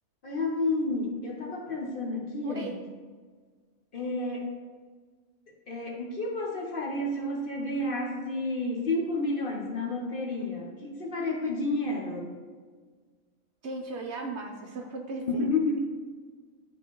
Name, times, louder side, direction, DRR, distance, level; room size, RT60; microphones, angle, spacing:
voice 1, 0.2-2.7 3.9-4.5 5.7-12.4 15.3-15.8, left 2 dB, 45° left, -2 dB, 1.0 m, -30 dB
voice 2, 2.4-2.7 13.6-15.5, right 2 dB, 60° right, 2 dB, 0.9 m, -36 dB
10.0 x 3.9 x 3.0 m, 1.5 s
omnidirectional pair, 1.5 m